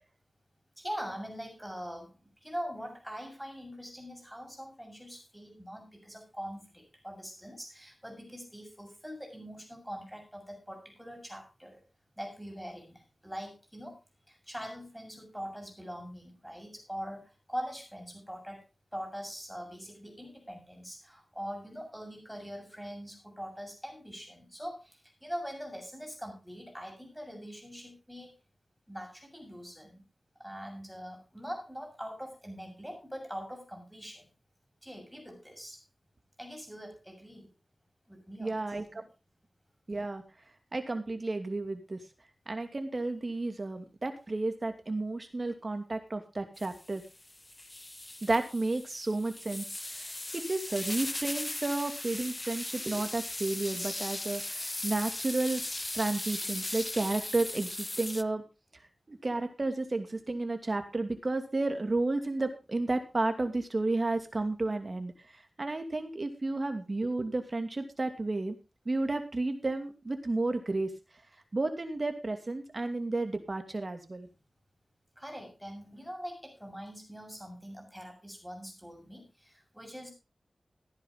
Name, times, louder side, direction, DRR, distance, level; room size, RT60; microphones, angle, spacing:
voice 1, 0.8-11.8 12.2-14.0 14.3-18.6 18.9-28.3 28.9-30.0 30.4-34.3 34.8-35.8 36.4-37.5 38.1-38.6 38.9-39.1 75.2-80.1, equal, 5° right, 3 dB, 6.9 m, -43 dB
voice 2, 38.4-38.9 39.9-40.2 40.7-42.0 42.5-47.0 48.2-49.7 50.3-55.6 55.9-58.4 59.1-65.1 65.6-68.6 68.9-70.9 71.5-74.3, right 2 dB, 45° right, 7 dB, 2.6 m, -32 dB
sound 1, 46.6-58.2, left 1 dB, 25° left, 0.6 m, -38 dB
15.5 x 10.0 x 3.9 m, 0.29 s
cardioid pair, 55°, 0 cm